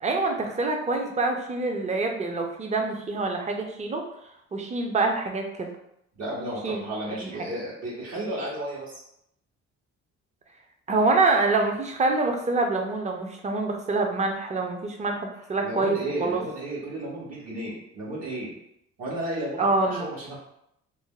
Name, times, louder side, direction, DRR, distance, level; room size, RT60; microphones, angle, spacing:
voice 1, 0.0-4.0 4.5-5.7 6.6-6.8 7.2-7.3 10.9-16.4 19.6-20.1, right 3 dB, 25° right, 3 dB, 0.5 m, -26 dB
voice 2, 6.1-8.9 15.6-18.6 19.0-20.4, right 1 dB, 60° right, -11 dB, 1.2 m, -33 dB
2.6 x 2.1 x 3.7 m, 0.76 s
cardioid pair, 90°, 30 cm